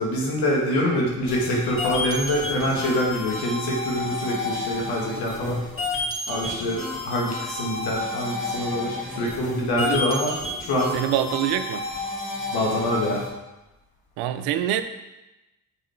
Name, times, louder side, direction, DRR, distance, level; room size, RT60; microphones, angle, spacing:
voice 1, 0.0-5.6 6.3-10.3 10.6-11.0 12.5-13.3, left 1 dB, 85° left, -2 dB, 1.5 m, -25 dB
sound 1, 1.3-13.3, left 2 dB, 35° left, 1.9 m, -31 dB
voice 2, 10.9-11.9 14.2-14.8, right 11 dB, 85° right, 9 dB, 0.5 m, -25 dB
5.6 x 4.0 x 4.3 m, 0.99 s
supercardioid pair, 50°, 37 cm